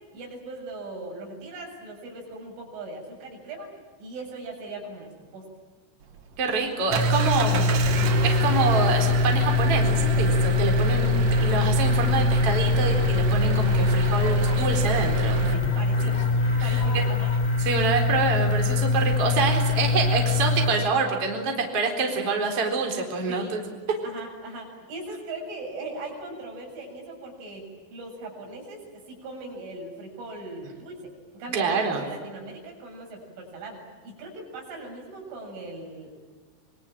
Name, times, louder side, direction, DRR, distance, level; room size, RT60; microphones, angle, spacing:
voice 1, 0.1-5.5 15.5-16.2 16.6-17.3 23.3-23.6 24.0-27.7 27.9-36.1, right 2 dB, 75° right, 1 dB, 9.7 m, -39 dB
Engine, 6.0-15.5, right 8 dB, 55° right, 2.8 m, -30 dB
voice 2, 6.4-15.5 16.6-17.0 17.6-23.6 31.5-32.0, right 4 dB, 30° right, 2 dB, 4.5 m, -26 dB
sound 1, 6.9-20.7, left 3 dB, 10° left, 2.3 m, -23 dB
sound 2, 11.3-17.5, left 4 dB, 85° left, 6.5 m, -44 dB
26.5 x 24.5 x 9.0 m, 1.4 s
omnidirectional pair, 5.6 m